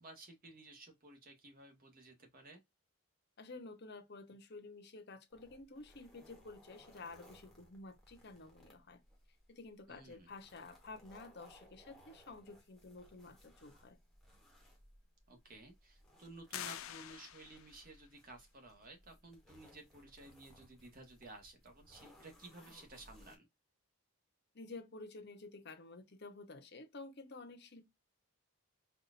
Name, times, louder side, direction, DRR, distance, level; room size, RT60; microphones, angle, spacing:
voice 1, 0.0-2.6 9.9-10.3 15.3-23.5, right 2 dB, 40° right, 1.2 m, -55 dB
voice 2, 3.4-9.0 9.5-14.0 24.5-27.9, left 3 dB, 50° left, 0.8 m, -51 dB
sound 1, 5.3-23.4, equal, ahead, 1.1 m, -64 dB
sound 2, 16.5-17.9, left 11 dB, 65° left, 0.4 m, -46 dB
4.1 x 2.5 x 2.4 m
head